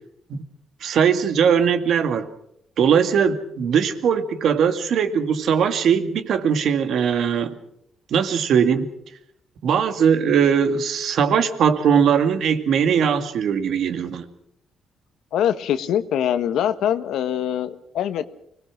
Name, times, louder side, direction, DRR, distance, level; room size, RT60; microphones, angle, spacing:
voice 1, 0.8-2.3 2.8-7.5 8.1-8.9 9.6-14.3, right 7 dB, 70° right, 8 dB, 2.2 m, -20 dB
voice 2, 15.3-18.3, left 10 dB, 80° left, 11 dB, 1.4 m, -23 dB
25.0 x 19.0 x 6.2 m, 0.73 s
cardioid pair, 90°, 0 cm